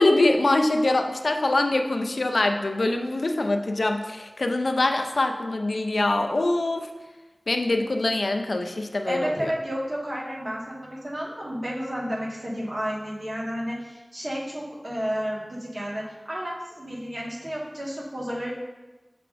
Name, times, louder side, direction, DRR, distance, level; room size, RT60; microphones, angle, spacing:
voice 1, 0.0-6.9 7.5-9.5, left 2 dB, 85° left, 5 dB, 0.5 m, -24 dB
voice 2, 9.0-18.5, equal, 65° right, -5 dB, 1.5 m, -31 dB
6.8 x 5.8 x 2.5 m, 1.1 s
wide cardioid pair, 50°, 0 cm